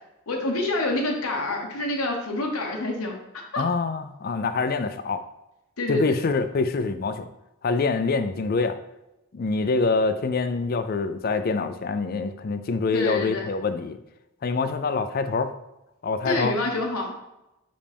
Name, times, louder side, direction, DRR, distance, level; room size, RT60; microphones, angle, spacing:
voice 1, 0.3-3.2 3.5-3.6 5.8-6.2 12.9-13.4 16.2-17.1, left 2 dB, 80° left, 1 dB, 1.1 m, -27 dB
voice 2, 3.6-5.2 5.9-7.3 7.6-8.8 9.3-14.0 14.4-15.5 16.0-16.6, left 4 dB, 45° left, 10 dB, 0.4 m, -25 dB
5.6 x 5.1 x 3.5 m, 0.92 s
head